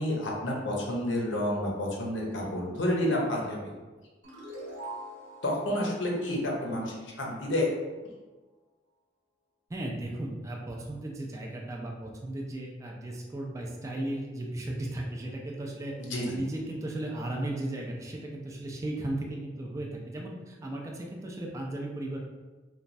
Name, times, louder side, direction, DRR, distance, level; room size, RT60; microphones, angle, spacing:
voice 1, 0.0-3.7 5.4-7.7 16.0-16.4, left 1 dB, 85° left, -2 dB, 0.7 m, -30 dB
sound 1, 4.2-7.5, right 1 dB, 75° right, 0.8 m, -44 dB
voice 2, 9.7-15.9 16.3-22.2, right 1 dB, 15° right, -1 dB, 0.3 m, -36 dB
3.0 x 2.2 x 2.6 m, 1.3 s
head